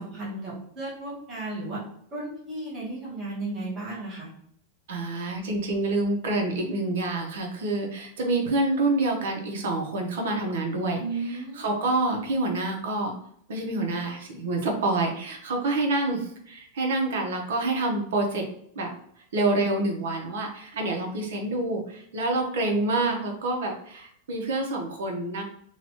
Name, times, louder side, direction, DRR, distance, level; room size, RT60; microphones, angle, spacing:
voice 1, 0.0-1.8 2.1-4.3 11.0-11.7, right 2 dB, 20° right, -7 dB, 1.0 m, -34 dB
voice 2, 4.9-11.0 11.3-13.1 13.5-18.4 18.7-18.9 19.3-25.4, right 2 dB, 75° right, 2 dB, 0.8 m, -27 dB
2.8 x 2.3 x 2.9 m, 0.66 s
supercardioid pair, 170°, 0 cm